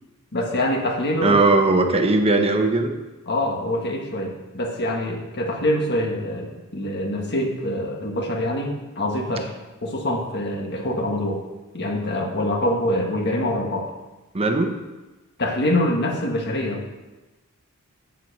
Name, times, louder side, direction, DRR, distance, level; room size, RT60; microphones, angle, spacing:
voice 1, 0.3-1.5 3.3-9.5 9.8-11.4 11.7-13.9 15.4-16.8, left 1 dB, 50° left, 2 dB, 1.5 m, -25 dB
voice 2, 1.2-2.9 14.3-14.7, right 2 dB, 25° right, 5 dB, 0.9 m, -18 dB
8.0 x 7.4 x 6.6 m, 1.1 s
head